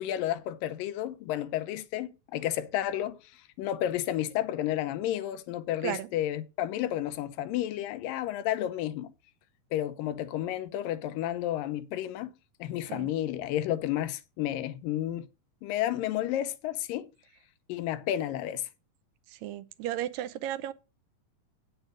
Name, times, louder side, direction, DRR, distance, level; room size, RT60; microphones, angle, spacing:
voice 1, 0.0-9.1 9.7-12.3 12.6-15.3 15.6-17.1 17.7-18.7, left 12 dB, 90° left, 2.5 m, -31 dB
voice 2, 19.4-20.7, right 12 dB, 90° right, 2.5 m, -34 dB
8.8 x 7.8 x 5.0 m
omnidirectional pair, 3.8 m